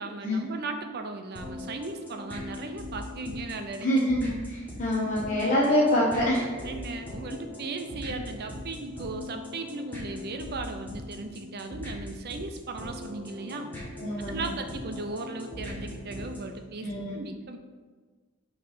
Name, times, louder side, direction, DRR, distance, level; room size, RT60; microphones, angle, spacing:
voice 1, 0.0-3.9 6.6-13.7 14.3-16.9 17.1-17.6, right 3 dB, 45° right, 6 dB, 0.6 m, -37 dB
sound 1, 1.4-16.6, left 1 dB, 10° left, 1.5 m, -40 dB
voice 2, 3.8-6.5 14.0-14.5 16.8-17.2, equal, 35° left, -6 dB, 0.9 m, -25 dB
5.8 x 3.2 x 5.5 m, 1.4 s
head